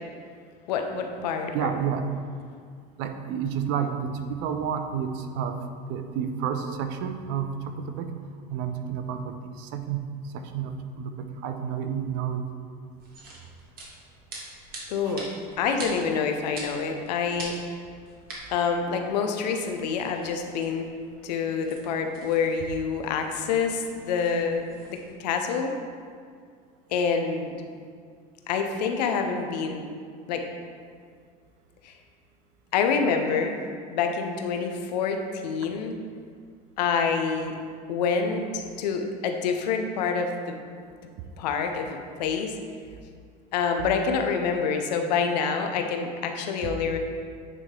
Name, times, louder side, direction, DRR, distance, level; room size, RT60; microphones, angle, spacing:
voice 1, 0.7-1.7 14.9-15.2 15.6-17.5 18.5-20.9 21.2-25.7 26.9-27.5 28.5-29.8 30.3-30.4 31.8-31.9 32.7-33.5 33.9-36.0 36.8-37.6 37.9-40.6 41.4-42.5 43.5-47.0, left 5 dB, 90° left, 5 dB, 0.7 m, -27 dB
voice 2, 1.5-2.1 3.0-8.2 8.5-12.4 15.1-15.2 46.6-46.7, right 7 dB, 65° right, 7 dB, 0.6 m, -30 dB
sound 1, 12.9-25.1, right 2 dB, 45° right, 1.6 m, -45 dB
8.9 x 3.2 x 3.7 m, 2.2 s
supercardioid pair, 100°, 21 cm